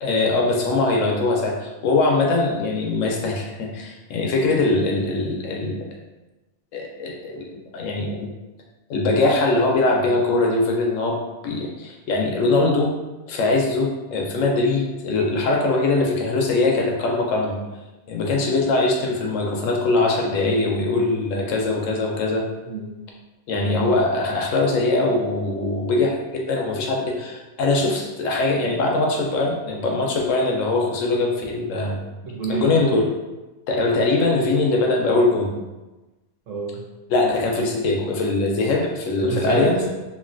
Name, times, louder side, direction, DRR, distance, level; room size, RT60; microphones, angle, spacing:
voice 1, 0.0-5.8 6.7-8.3 8.9-12.9 13.3-17.6 18.1-22.4 23.5-32.0 32.5-33.0 33.7-35.5 37.1-39.8, left 2 dB, 70° left, 0 dB, 0.9 m, -22 dB
voice 2, 22.7-23.0 32.2-32.9 36.5-36.9 39.2-39.9, right 3 dB, 70° right, -2 dB, 0.9 m, -27 dB
3.1 x 2.5 x 2.5 m, 1.1 s
omnidirectional pair, 1.5 m